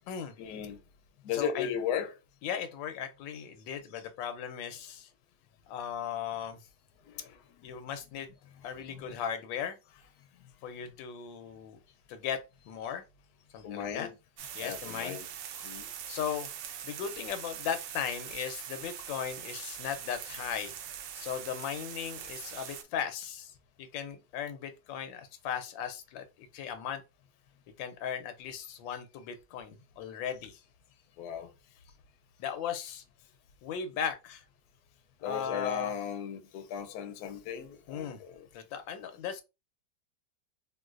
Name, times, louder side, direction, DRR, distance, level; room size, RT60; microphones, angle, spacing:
voice 1, 0.4-0.8 1.2-2.2 7.1-7.4 8.1-8.2 8.7-9.2 13.6-14.1 14.6-15.3 15.6-15.9 31.2-31.5 35.2-38.5, left 8 dB, 70° left, 1.0 m, -36 dB
voice 2, 1.3-1.7 2.4-5.1 5.7-6.6 7.6-8.4 8.6-9.8 10.6-11.8 12.1-13.0 13.5-14.1 14.5-15.2 16.1-16.5 16.8-20.8 21.1-27.0 27.8-30.6 32.4-33.0 33.6-34.4 35.2-35.9 37.9-38.2 38.5-39.4, left 8 dB, 90° left, 1.3 m, -37 dB
sound 1, 14.4-22.8, right 9 dB, 75° right, 1.2 m, -42 dB
3.8 x 2.4 x 2.4 m
omnidirectional pair, 2.0 m